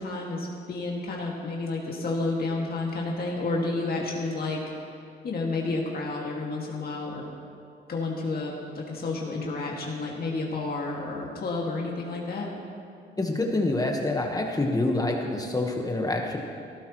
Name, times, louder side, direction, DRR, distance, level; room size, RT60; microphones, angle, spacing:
voice 1, 0.0-4.6 5.2-7.2 7.9-12.5, left 3 dB, 50° left, -2 dB, 2.1 m, -30 dB
voice 2, 13.2-16.4, left 2 dB, 20° left, 1 dB, 1.3 m, -26 dB
16.5 x 14.0 x 3.1 m, 2.4 s
cardioid pair, 90°, 20 cm